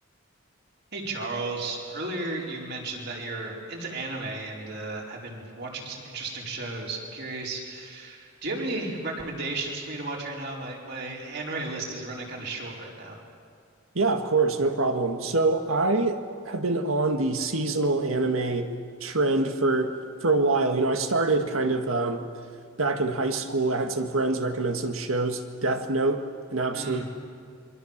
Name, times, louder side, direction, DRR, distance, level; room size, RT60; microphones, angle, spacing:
voice 1, 0.9-13.2 26.7-27.0, right 2 dB, 55° right, -2 dB, 4.7 m, -34 dB
voice 2, 14.0-18.7 19.0-20.0 20.2-22.3 22.8-26.2 26.5-27.1, right 3 dB, 80° right, 6 dB, 1.9 m, -25 dB
27.0 x 23.5 x 7.5 m, 2.2 s
head